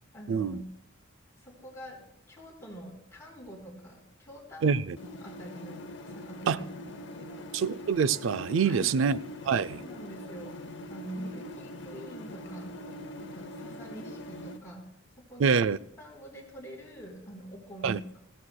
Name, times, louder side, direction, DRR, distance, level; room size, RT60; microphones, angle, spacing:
voice 1, 0.1-0.7 1.4-2.0 2.3-7.5 8.6-9.2 9.7-10.6 10.9-12.7 13.2-14.8 15.3-15.6 16.0-18.2, right 1 dB, 15° left, 3.9 m, -45 dB
voice 2, 4.6-5.0 6.5-6.6 7.5-9.2 9.4-9.8 15.4-15.8 17.8-18.0, right 6 dB, 70° right, 0.4 m, -25 dB
sound 1, 5.0-14.6, left 1 dB, 60° left, 0.8 m, -43 dB
19.0 x 15.5 x 2.2 m
head